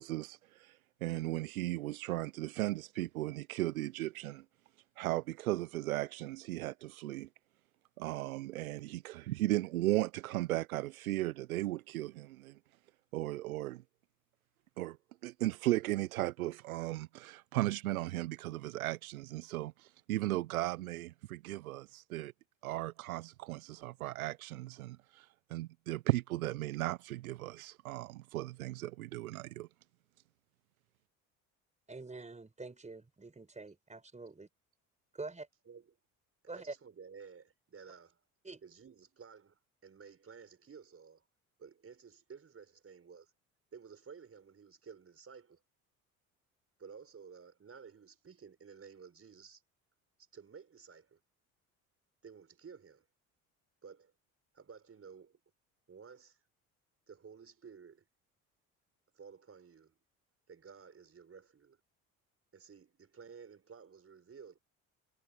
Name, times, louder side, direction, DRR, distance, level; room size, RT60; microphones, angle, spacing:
voice 1, 0.0-4.4 5.0-7.3 8.0-12.6 13.1-13.8 14.8-15.0 15.2-22.3 22.6-29.7, right 17 dB, 80° right, 1.0 m, -36 dB
voice 2, 31.9-34.5 35.1-35.5 36.5-36.7 38.4-38.6, right 3 dB, 15° right, 4.5 m, -46 dB
voice 3, 36.5-38.2 38.6-41.2 41.6-43.3 43.7-45.6 46.8-49.6 50.3-51.2 52.2-53.1 53.8-54.1 54.5-55.4 55.9-56.4 57.1-58.1 59.1-60.0 60.5-61.8 62.5-64.6, right 6 dB, 30° right, 5.7 m, -54 dB
figure-of-eight pair, 60°, 43 cm